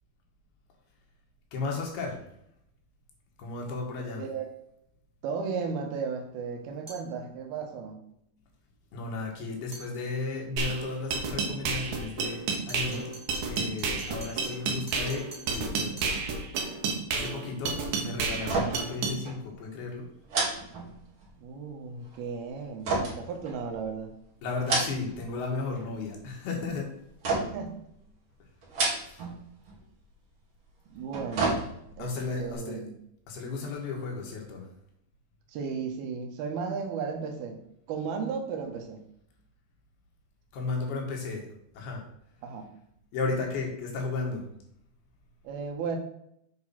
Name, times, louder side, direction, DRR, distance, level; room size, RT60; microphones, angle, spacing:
voice 1, 1.5-2.2 3.4-4.2 8.9-13.1 13.5-16.2 17.1-20.1 24.4-26.9 29.1-29.3 32.0-32.8 33.3-34.7 40.5-41.4 41.8-42.0 43.1-44.5, left 3 dB, 80° left, 0 dB, 3.8 m, -34 dB
voice 2, 5.2-8.0 21.4-24.1 27.3-27.8 30.9-31.7 32.0-32.9 35.5-39.0 42.4-42.7 45.4-46.0, right 5 dB, 80° right, 4 dB, 3.0 m, -35 dB
sound 1, 6.9-7.1 9.7-9.9 12.5-16.2, right 3 dB, 15° right, 1.5 m, -46 dB
sound 2, 10.6-19.2, right 4 dB, 65° right, 2.6 m, -31 dB
sound 3, 18.4-19.0 19.3-19.4 20.3-21.4 22.8-24.0 24.5-25.3 25.6-26.2 27.2-27.7 28.6-29.4 29.7-29.8 30.9-32.1 32.5-32.6, right 3 dB, 40° right, 2.6 m, -30 dB
8.1 x 4.9 x 5.6 m, 0.74 s
omnidirectional pair, 4.4 m